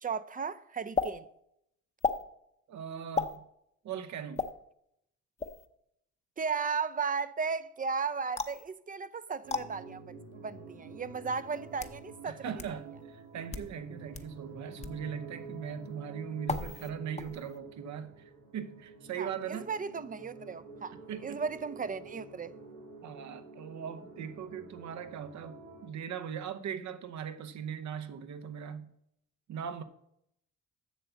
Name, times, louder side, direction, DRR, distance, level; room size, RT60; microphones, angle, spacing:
voice 1, 0.0-1.3 6.4-10.0 10.3-12.4 19.2-22.5, right 5 dB, 25° right, 0.5 m, -35 dB
sound 1, 1.0-1.1 2.0-2.2 3.2-3.4 4.4-4.5 5.4-5.7 8.4-8.6 9.5-9.6 10.6-10.7 11.5-12.0 12.6-12.7 13.4-13.7 14.1-14.3 14.8-15.0 16.5-16.9 17.2-17.6, left 4 dB, 20° left, 0.8 m, -33 dB
voice 2, 2.7-3.4 3.8-4.5 12.2-18.2 18.5-19.7 21.1-21.4 23.0-28.9 29.5-29.8, right 8 dB, 70° right, 1.0 m, -40 dB
sound 2, 9.4-25.9, right 3 dB, 90° right, 2.5 m, -49 dB
7.7 x 6.8 x 7.1 m
cardioid pair, 90°, 30 cm